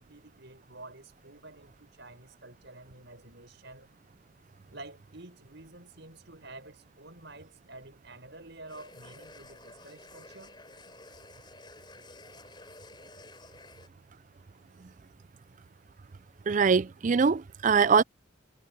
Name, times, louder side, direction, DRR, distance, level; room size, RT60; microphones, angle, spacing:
voice 1, 0.0-3.9 4.7-10.5, right 2 dB, 55° right, 6.4 m, -49 dB
sound 1, 8.7-13.9, left 2 dB, 20° left, 6.9 m, -51 dB
voice 2, 16.5-18.0, right 5 dB, 35° right, 0.4 m, -23 dB
head